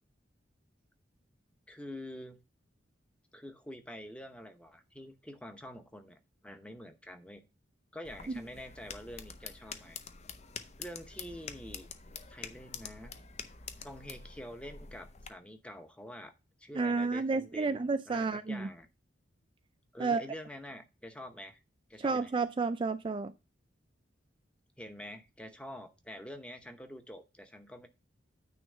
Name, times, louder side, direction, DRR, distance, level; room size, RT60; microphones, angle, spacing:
voice 1, 1.7-2.4 3.3-7.4 7.9-10.0 10.8-11.9 12.3-13.1 13.8-16.3 16.6-18.9 19.9-21.6 21.9-22.3 24.8-27.9, left 1 dB, 5° left, 0.8 m, -47 dB
sound 1, 8.0-15.3, left 6 dB, 35° left, 0.6 m, -46 dB
voice 2, 16.7-18.7 20.0-20.2 22.0-23.3, right 4 dB, 25° right, 0.3 m, -31 dB
9.3 x 3.2 x 6.6 m
head